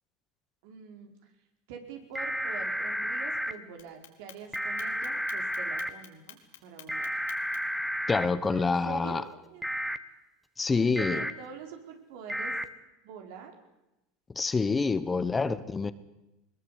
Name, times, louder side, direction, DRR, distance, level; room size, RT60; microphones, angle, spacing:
voice 1, 0.6-1.3 1.7-7.1 8.5-9.7 10.7-12.6 13.0-13.6, right 7 dB, 70° right, 4.6 m, -45 dB
sound 1, 2.1-3.5 4.5-5.9 6.9-8.2 9.6-10.0 11.0-11.3 12.3-12.6, equal, ahead, 1.6 m, -32 dB
Clock, 3.8-7.8, left 12 dB, 85° left, 2.9 m, -50 dB
voice 2, 8.1-9.2 10.6-11.3 14.3-15.9, left 4 dB, 20° left, 1.2 m, -27 dB
21.0 x 20.5 x 8.4 m
supercardioid pair, 100°, 0 cm